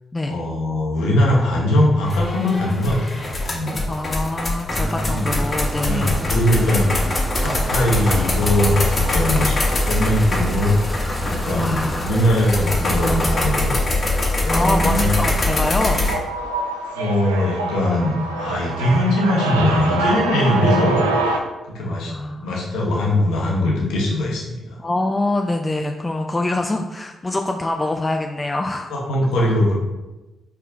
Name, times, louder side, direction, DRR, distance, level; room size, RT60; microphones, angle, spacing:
voice 1, 0.2-3.8 5.1-5.3 5.8-6.9 7.4-10.7 11.2-13.8 14.4-15.2 16.9-21.1 21.7-22.1 22.4-24.6 28.9-29.7, left 1 dB, 75° left, -3 dB, 1.0 m, -20 dB
sound 1, 2.0-16.1, left 2 dB, 40° left, 1.0 m, -23 dB
voice 2, 3.9-6.4 7.0-7.1 7.9-8.0 11.5-12.1 14.5-16.0 18.9-19.0 22.1-22.5 24.8-28.9, left 2 dB, 25° left, 3 dB, 0.3 m, -25 dB
sound 2, 4.7-13.3, right 1 dB, 10° right, 0.7 m, -31 dB
sound 3, 15.7-21.4, right 3 dB, 90° right, 0.3 m, -25 dB
4.3 x 3.6 x 2.5 m, 1.1 s
hypercardioid pair, 40°, 0 cm